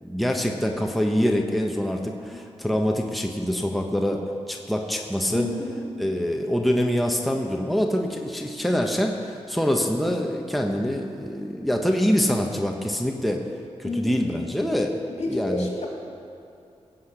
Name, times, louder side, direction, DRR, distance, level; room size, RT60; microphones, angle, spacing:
voice 1, 0.0-5.5 6.0-13.4 13.8-14.9 15.3-15.7, equal, ahead, 1 dB, 1.2 m, -25 dB
voice 2, 5.3-5.8 13.8-14.2 15.1-15.9, left 2 dB, 70° left, -1 dB, 2.9 m, -30 dB
17.0 x 8.1 x 6.7 m, 2.6 s
cardioid pair, 75°, 11 cm